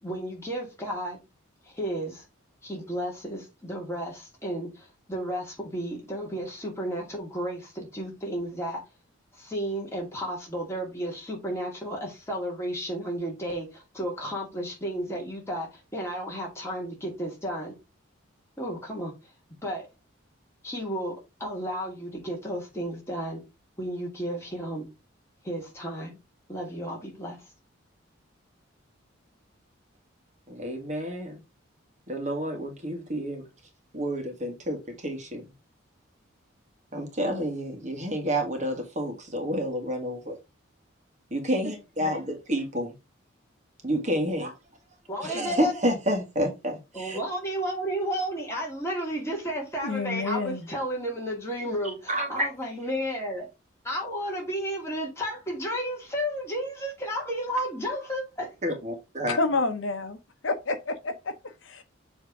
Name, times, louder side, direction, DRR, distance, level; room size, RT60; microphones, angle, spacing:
voice 1, 0.0-1.2 1.7-2.2 2.6-8.8 9.4-17.7 18.6-19.1 19.6-19.9 20.6-23.4 23.8-24.9 25.4-26.2 26.5-27.4 45.1-45.7 46.9-53.5 53.8-58.5, equal, 15° left, 2.3 m, -32 dB
voice 2, 30.5-31.4 32.1-33.4 33.9-34.8 35.0-35.4 36.9-40.3 41.3-42.9 43.8-44.5 45.2-47.2 52.1-52.5 58.6-59.4, equal, 35° right, 1.7 m, -29 dB
voice 3, 49.8-50.6 59.3-60.2 60.4-61.8, left 3 dB, 70° left, 0.9 m, -29 dB
7.2 x 3.5 x 4.8 m
head